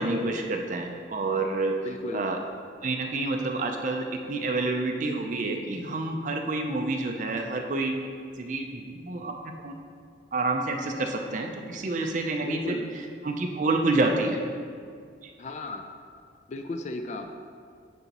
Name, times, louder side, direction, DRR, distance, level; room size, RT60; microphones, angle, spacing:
voice 1, 0.0-1.8 2.1-2.4 2.8-7.9 8.4-9.8 10.3-12.8 13.2-14.4 15.2-15.3, right 2 dB, 40° right, 3 dB, 0.5 m, -28 dB
voice 2, 1.8-2.3 12.4-12.9 15.4-15.8 16.5-17.3, left 2 dB, 40° left, 5 dB, 0.3 m, -35 dB
9.5 x 3.9 x 2.9 m, 2.2 s
head